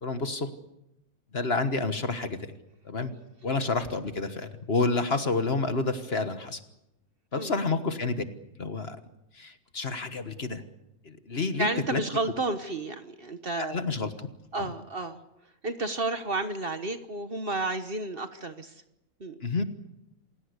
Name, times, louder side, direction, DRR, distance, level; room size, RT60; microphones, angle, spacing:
voice 1, 0.0-0.5 1.3-2.5 2.8-3.1 3.4-6.6 7.3-8.2 8.6-9.0 9.3-10.6 11.0-12.0 13.6-14.3 14.5-14.7 19.4-19.6, left 3 dB, 45° left, 9 dB, 1.6 m, -29 dB
voice 2, 11.6-13.8 14.5-15.2 15.6-18.7 19.2-19.4, right 2 dB, 40° right, 9 dB, 1.4 m, -31 dB
28.0 x 17.5 x 8.2 m, 0.87 s
omnidirectional pair, 1.5 m